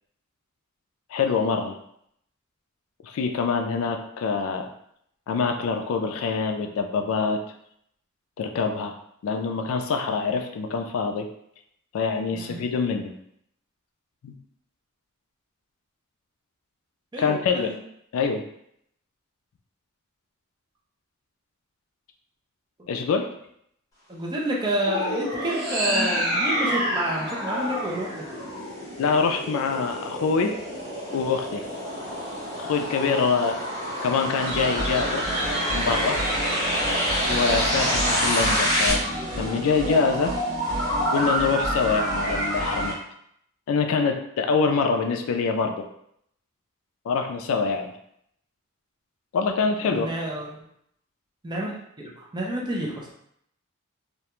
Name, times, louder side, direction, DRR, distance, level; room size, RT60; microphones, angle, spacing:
voice 1, 1.1-1.7 3.0-4.7 5.3-7.4 8.4-8.9 9.2-11.3 11.9-13.1 14.2-14.3 17.2-17.7 18.1-18.4 22.9-23.3 29.0-30.6 31.1-31.6 32.6-33.6 34.0-35.2 35.7-36.2 37.3-39.0 39.4-40.3 41.1-43.0 43.7-45.9 47.1-47.9 49.3-50.1, left 5 dB, 65° left, 5 dB, 0.3 m, -25 dB
voice 2, 12.3-12.6 17.1-17.8 24.1-28.2 49.8-50.6 51.4-51.7 52.0-53.1, right 1 dB, 20° right, -3 dB, 0.5 m, -29 dB
sound 1, 24.7-29.1, equal, 45° right, 1.1 m, -27 dB
sound 2, 25.7-38.9, equal, 15° left, 0.9 m, -29 dB
sound 3, 34.4-42.9, right 1 dB, 85° right, 1.1 m, -28 dB
2.3 x 2.1 x 2.9 m, 0.73 s
head